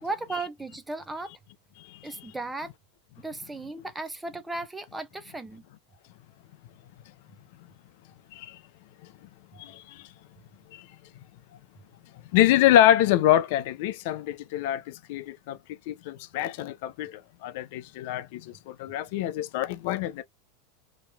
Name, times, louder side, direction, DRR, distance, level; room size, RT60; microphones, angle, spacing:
voice 1, 0.0-1.3 2.0-2.7 3.2-5.6, right 3 dB, 10° right, 0.6 m, -35 dB
voice 2, 1.8-2.3 8.3-8.6 9.0-9.1 9.5-10.1 10.7-10.9 12.3-15.6 15.9-20.2, left 12 dB, 65° left, 0.5 m, -25 dB
3.1 x 2.8 x 2.3 m
hypercardioid pair, 100°, 0 cm